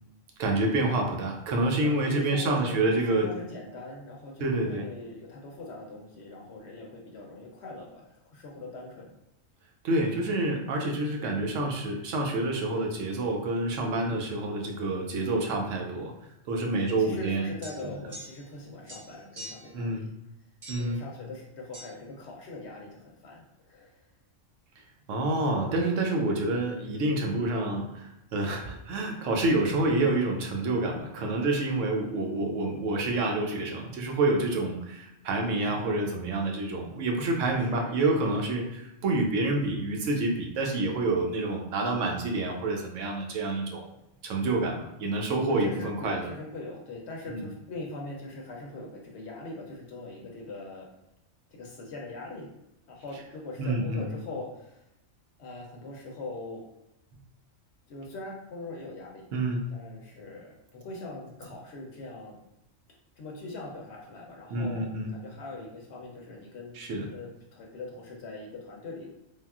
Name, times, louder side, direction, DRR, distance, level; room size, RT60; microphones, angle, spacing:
voice 1, 0.4-3.3 4.4-4.8 9.8-16.1 16.5-17.5 19.7-20.1 20.7-21.0 25.1-43.9 44.2-46.3 47.3-47.5 53.6-54.1 59.3-59.7 64.5-65.2 66.7-67.1, right 2 dB, 75° right, 1 dB, 0.9 m, -28 dB
voice 2, 1.8-9.1 14.1-14.5 16.8-20.1 20.8-24.0 31.7-32.3 35.5-36.0 37.5-38.3 45.5-50.9 51.5-52.5 52.9-54.8 55.4-56.6 57.9-59.3 59.7-62.4 63.2-66.8 67.1-69.2, left 2 dB, 65° left, 0 dB, 0.8 m, -42 dB
sound 1, 17.6-18.6 18.9-19.8 20.6-21.0 21.7-21.9, equal, 40° right, 0.9 m, -44 dB
3.4 x 2.3 x 2.3 m, 0.87 s
omnidirectional pair, 1.4 m